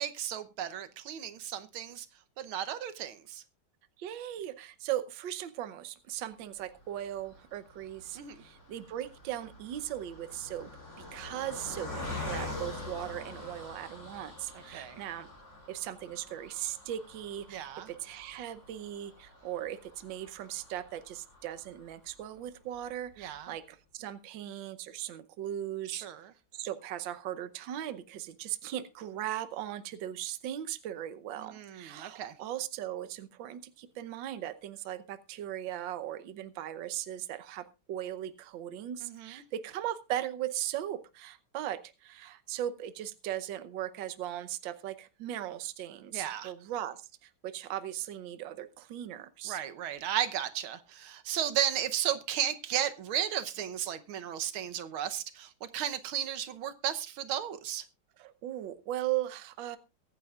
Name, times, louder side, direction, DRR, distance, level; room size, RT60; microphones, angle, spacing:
voice 1, 0.0-2.1 2.4-3.4 8.2-8.4 14.7-15.0 17.5-17.9 23.2-23.5 25.9-26.3 31.4-32.3 39.0-39.4 46.1-46.5 49.5-57.8, right 10 dB, 85° right, 1.8 m, -34 dB
voice 2, 4.0-10.7 11.0-15.3 15.7-26.1 26.5-49.6 58.2-59.8, right 12 dB, 70° right, 1.6 m, -38 dB
Car passing by, 6.8-22.2 22.8-22.9 23.1-23.3, left 2 dB, 35° left, 4.1 m, -45 dB
22.5 x 10.0 x 2.4 m
omnidirectional pair, 2.2 m